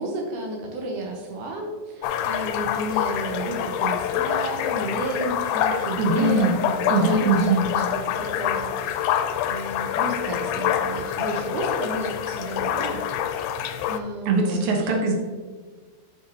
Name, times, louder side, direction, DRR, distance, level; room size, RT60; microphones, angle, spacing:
voice 1, 0.0-13.0 13.5-15.0, right 2 dB, 80° right, 0 dB, 1.8 m, -32 dB
sound 1, 2.0-14.0, left 9 dB, 85° left, 2.6 m, -26 dB
voice 2, 6.0-6.5 6.9-7.6 14.3-15.1, right 3 dB, 65° right, 0 dB, 2.0 m, -21 dB
11.5 x 5.6 x 2.9 m, 1.5 s
omnidirectional pair, 4.9 m